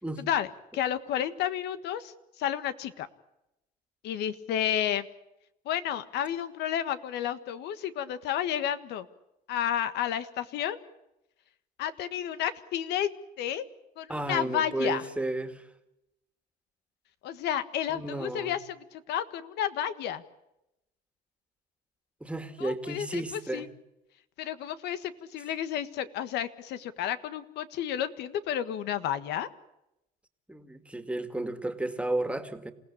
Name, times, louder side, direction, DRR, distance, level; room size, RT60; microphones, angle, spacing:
voice 1, 0.2-0.5 0.7-3.1 4.0-5.1 5.6-9.1 9.5-10.8 11.8-13.7 14.0-15.0 17.2-20.2 22.6-23.7 24.4-29.5, left 10 dB, 80° left, 12 dB, 1.6 m, -31 dB
voice 2, 14.1-15.6 17.9-18.6 22.2-23.7 30.5-32.7, right 2 dB, 5° right, 8 dB, 2.3 m, -33 dB
28.0 x 17.0 x 8.6 m, 0.89 s
cardioid pair, 110°, 17 cm